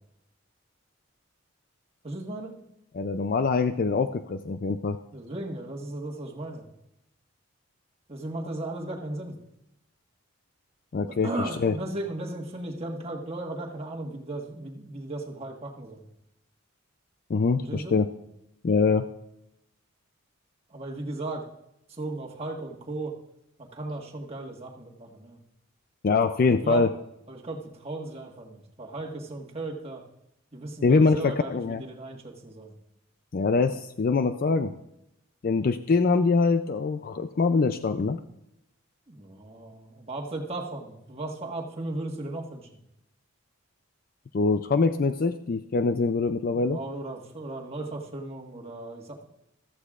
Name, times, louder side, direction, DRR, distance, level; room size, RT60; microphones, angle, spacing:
voice 1, 2.0-2.5 5.1-6.7 8.1-9.3 11.2-16.0 17.6-18.0 20.7-21.4 22.0-23.1 23.7-25.3 26.6-26.8 27.3-27.6 27.8-30.0 30.5-31.5 31.9-32.7 39.1-42.6 46.5-49.2, right 2 dB, 30° right, -1 dB, 1.5 m, -36 dB
voice 2, 2.9-5.0 10.9-11.8 17.3-18.1 18.6-19.1 26.0-27.0 30.8-31.8 33.3-34.7 35.4-38.2 44.3-46.8, left 4 dB, 45° left, 10 dB, 0.4 m, -24 dB
14.5 x 13.5 x 2.4 m, 0.84 s
head